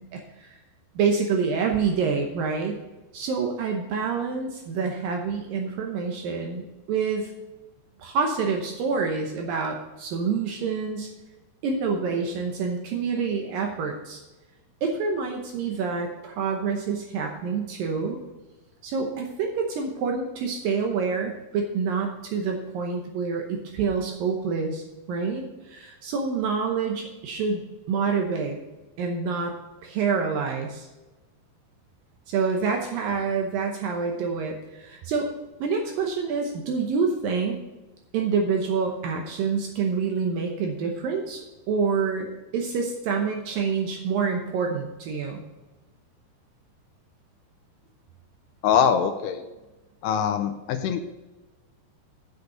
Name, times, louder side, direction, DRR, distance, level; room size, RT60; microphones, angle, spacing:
voice 1, 0.1-0.5 1.0-2.8 3.1-7.3 8.0-11.1 11.6-14.2 14.8-18.2 18.8-28.6 29.0-29.5 29.8-30.9 32.3-35.3 35.6-37.6 38.1-41.4 41.7-45.4, right 5 dB, 70° right, 2 dB, 2.3 m, -27 dB
voice 2, 48.6-49.4 50.0-51.1, left 8 dB, 80° left, 8 dB, 2.6 m, -23 dB
8.2 x 6.7 x 5.8 m, 1.1 s
omnidirectional pair, 4.9 m